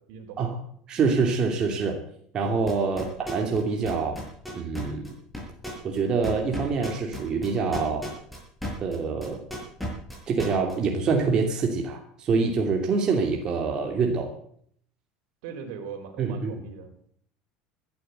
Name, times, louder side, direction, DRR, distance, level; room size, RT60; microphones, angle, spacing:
voice 1, 0.1-0.5 2.9-3.1 15.4-17.1, right 7 dB, 75° right, 6 dB, 4.3 m, -40 dB
voice 2, 0.9-2.0 2.3-4.2 4.5-5.1 5.8-8.0 8.8-9.4 10.3-14.3 16.2-16.6, right 4 dB, 35° right, 2 dB, 2.9 m, -25 dB
sound 1, 2.7-3.6 3.9-9.0 9.2-10.7, left 1 dB, ahead, 6.6 m, -34 dB
14.0 x 11.5 x 8.1 m, 0.64 s
supercardioid pair, 135°, 2 cm